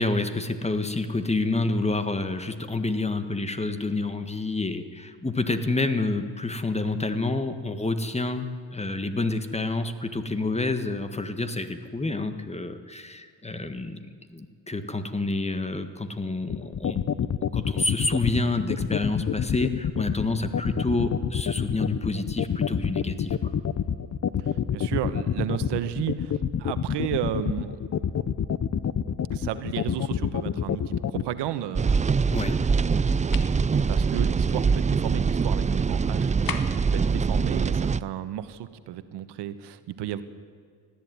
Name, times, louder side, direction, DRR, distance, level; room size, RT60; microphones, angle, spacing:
voice 1, 0.0-14.0 14.3-17.0 17.4-23.5 32.3-32.6, left 2 dB, 15° left, 9 dB, 1.7 m, -28 dB
sound 1, 16.5-31.2, left 8 dB, 40° left, 0.9 m, -26 dB
voice 2, 24.7-27.8 29.3-32.5 33.9-36.6 36.9-40.2, right 12 dB, 80° right, 12 dB, 1.2 m, -33 dB
sound 2, 31.8-38.0, right 5 dB, 20° right, 0.4 m, -23 dB
sound 3, 33.3-33.6 36.5-36.9, left 7 dB, 55° left, 1.9 m, -34 dB
20.0 x 14.0 x 9.4 m, 2.1 s
cardioid pair, 80°, 41 cm